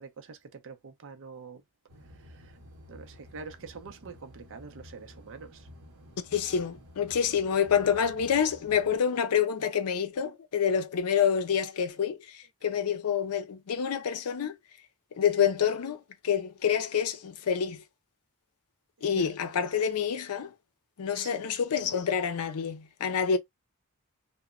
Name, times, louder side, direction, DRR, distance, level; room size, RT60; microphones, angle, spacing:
voice 1, 0.0-1.6 2.2-2.6 2.9-5.7 12.9-13.0 19.0-19.3 21.1-21.4, right 5 dB, 60° right, 0.5 m, -45 dB
sound 1, 1.9-9.0, equal, 85° right, 0.8 m, -52 dB
voice 2, 6.3-14.6 15.2-17.8 19.0-20.5 21.0-23.4, left 7 dB, 75° left, 0.5 m, -27 dB
2.9 x 2.1 x 2.4 m
head